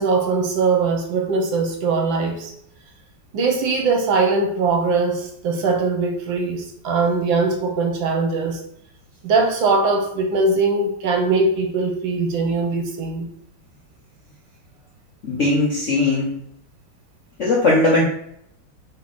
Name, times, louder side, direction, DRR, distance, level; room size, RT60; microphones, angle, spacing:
voice 1, 0.0-2.5 3.3-8.6 9.2-13.3, right 4 dB, 70° right, 3 dB, 1.5 m, -21 dB
voice 2, 15.2-16.4 17.4-18.0, left 2 dB, 60° left, -4 dB, 0.8 m, -18 dB
3.5 x 3.0 x 4.1 m, 0.70 s
omnidirectional pair, 2.2 m